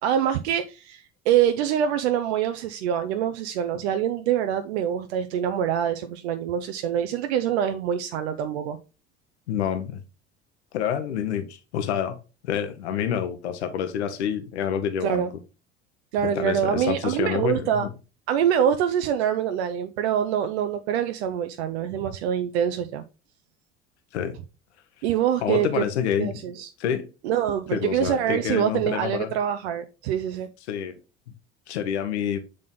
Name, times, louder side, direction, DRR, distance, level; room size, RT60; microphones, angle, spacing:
voice 1, 0.0-8.8 15.0-15.3 16.1-17.9 18.3-23.0 25.0-25.8 26.2-26.7 27.2-30.5, right 9 dB, 75° right, 0.7 m, -25 dB
voice 2, 9.5-10.0 10.7-12.2 12.4-15.3 16.2-17.9 24.1-24.4 25.4-26.3 26.8-27.1 27.7-29.3 30.7-31.0 31.7-32.4, left 8 dB, 85° left, 0.9 m, -27 dB
7.4 x 3.9 x 3.7 m
hypercardioid pair, 65°, 33 cm